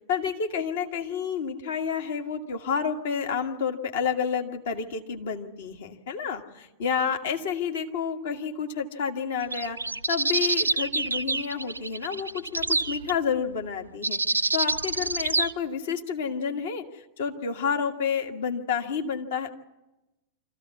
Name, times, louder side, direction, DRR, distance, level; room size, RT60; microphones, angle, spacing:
voice 1, 0.1-9.8 10.1-14.2 14.5-19.6, left 6 dB, 60° left, 4 dB, 1.6 m, -30 dB
sound 1, 9.4-13.1 14.0-15.5, right 3 dB, 80° right, 0.7 m, -27 dB
25.5 x 15.0 x 8.3 m, 1.0 s
figure-of-eight pair, 90°, 0 cm